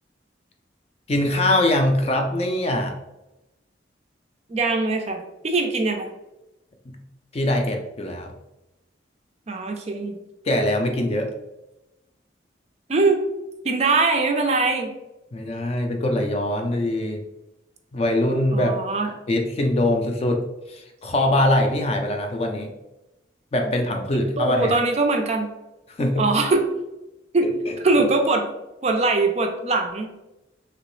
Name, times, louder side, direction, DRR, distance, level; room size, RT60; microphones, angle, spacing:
voice 1, 1.1-2.9 6.9-7.0 7.3-8.3 10.4-11.3 15.3-17.2 17.9-18.8 19.3-20.4 20.7-22.7 23.5-24.8 26.0-26.3 27.7-28.0, left 1 dB, 35° left, 3 dB, 0.4 m, -22 dB
voice 2, 4.5-6.1 9.5-10.2 12.9-13.2 13.6-14.9 18.5-19.1 24.4-25.5 26.2-26.6 27.3-27.5 27.8-28.4 28.8-30.1, right 3 dB, 35° right, 4 dB, 0.4 m, -22 dB
3.0 x 2.9 x 3.0 m, 0.95 s
head